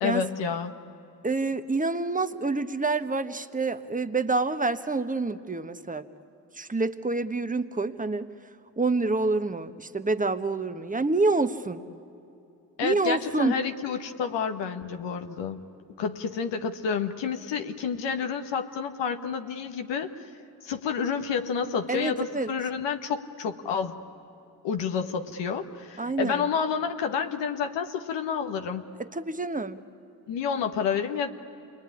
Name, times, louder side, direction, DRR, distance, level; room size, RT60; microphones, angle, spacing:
voice 1, 0.0-0.7 12.8-15.7 16.0-20.3 20.6-24.0 24.6-28.9 30.3-31.3, left 6 dB, 80° left, 6 dB, 1.4 m, -29 dB
voice 2, 1.2-6.1 6.5-8.3 8.8-11.8 12.8-13.5 21.9-22.5 26.0-26.5 29.0-29.8, right 3 dB, 20° right, 9 dB, 1.3 m, -27 dB
28.0 x 21.5 x 9.9 m, 2.9 s
supercardioid pair, 55°, 43 cm